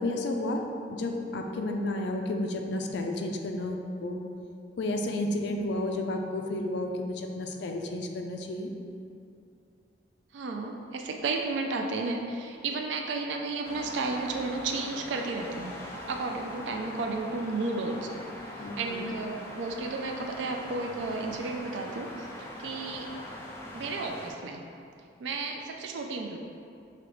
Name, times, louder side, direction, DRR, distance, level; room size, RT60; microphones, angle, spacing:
voice 1, 0.0-4.2 4.8-8.7 18.6-19.1, left 1 dB, 70° left, 3 dB, 0.4 m, -32 dB
voice 2, 10.3-15.7 16.1-18.2 18.5-23.1 23.7-24.6 25.2-26.4, right 3 dB, 90° right, 2 dB, 0.3 m, -33 dB
sound 1, 13.6-24.3, left 1 dB, 15° left, 0.5 m, -42 dB
5.0 x 2.9 x 3.1 m, 2.5 s
head